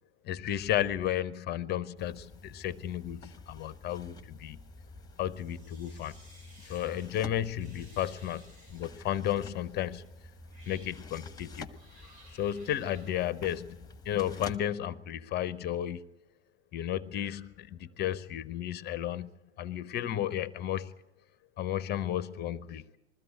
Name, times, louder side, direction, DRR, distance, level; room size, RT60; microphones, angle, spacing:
voice 1, 0.3-4.6 5.2-6.2 6.6-8.4 8.7-10.1 10.7-11.7 12.3-13.8 14.0-16.1 16.7-19.3 19.6-20.9 21.6-22.8, left 11 dB, 30° left, 18 dB, 0.7 m, -33 dB
sound 1, 2.0-14.6, left 3 dB, 10° left, 1.1 m, -49 dB
sound 2, 5.3-7.1 7.6-9.1 9.8-10.0 10.4-11.0 11.7-13.2, right 1 dB, 65° right, 6.1 m, -58 dB
21.5 x 14.5 x 9.8 m, 0.95 s
figure-of-eight pair, 95°, 35 cm